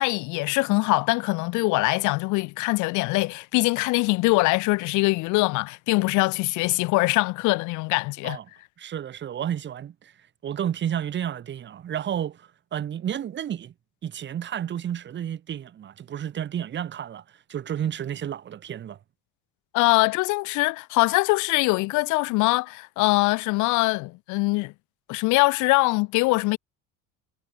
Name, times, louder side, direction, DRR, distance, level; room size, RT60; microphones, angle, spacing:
voice 1, 0.0-8.4 19.7-24.7 25.1-26.6, left 24 dB, 65° left, 0.9 m, -23 dB
voice 2, 8.8-10.1 10.4-13.7 14.0-17.2 17.5-19.0, right 9 dB, 35° right, 4.2 m, -31 dB
cardioid pair, 155°, 32 cm